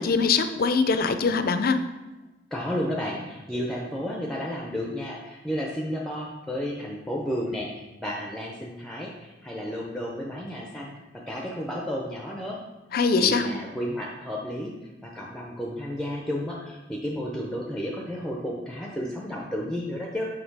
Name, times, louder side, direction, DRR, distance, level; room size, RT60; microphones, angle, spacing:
voice 1, 0.0-1.8 12.9-13.5, left 4 dB, 55° left, 9 dB, 0.4 m, -22 dB
voice 2, 2.5-12.6 13.2-14.7 15.0-20.3, equal, 5° left, -2 dB, 0.5 m, -32 dB
6.5 x 3.1 x 4.6 m, 1.1 s
head